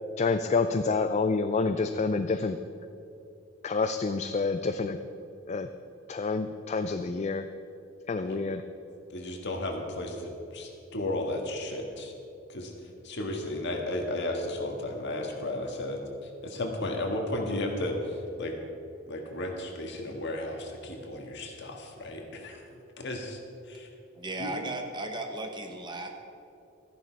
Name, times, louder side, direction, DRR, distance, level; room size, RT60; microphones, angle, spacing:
voice 1, 0.2-2.6 3.6-5.0 5.5-5.7 6.1-7.4 8.1-8.6, left 4 dB, 35° left, 9 dB, 0.4 m, -28 dB
voice 2, 9.1-12.1 12.5-12.7 13.0-18.6 19.1-23.4 23.6-23.9 24.4-24.5, left 1 dB, 60° left, 2 dB, 1.7 m, -34 dB
voice 3, 24.1-26.1, right 2 dB, 25° right, 4 dB, 1.1 m, -35 dB
13.5 x 11.0 x 4.6 m, 2.7 s
head